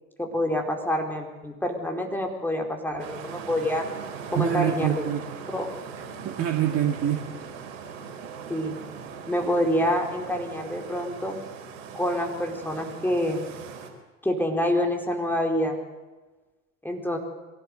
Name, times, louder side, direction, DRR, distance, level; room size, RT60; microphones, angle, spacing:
voice 1, 0.2-3.9 4.3-5.0 5.5-5.7 8.5-8.8 9.3-11.4 11.9-13.5 14.2-15.8 16.8-17.2, equal, 5° left, 2 dB, 4.5 m, -27 dB
sound 1, 3.0-13.9, right 6 dB, 60° right, 4.5 m, -40 dB
voice 2, 4.3-5.2 6.0-7.3, right 11 dB, 35° right, 3 dB, 2.3 m, -26 dB
23.5 x 16.5 x 8.0 m, 1.2 s
figure-of-eight pair, 80°, 39 cm